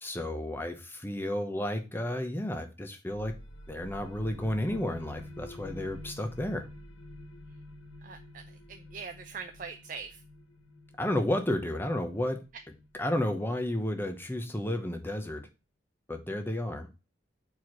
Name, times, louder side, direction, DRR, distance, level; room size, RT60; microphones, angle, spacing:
voice 1, 0.0-3.3 3.7-6.7 11.0-12.4 13.0-15.5 16.1-16.9, left 1 dB, 10° left, 6 dB, 0.9 m, -32 dB
sound 1, 3.1-14.5, left 1 dB, 90° left, 1.3 m, -49 dB
voice 2, 8.0-10.2, right 5 dB, 40° right, 6 dB, 0.5 m, -42 dB
4.7 x 4.7 x 5.9 m, 0.30 s
head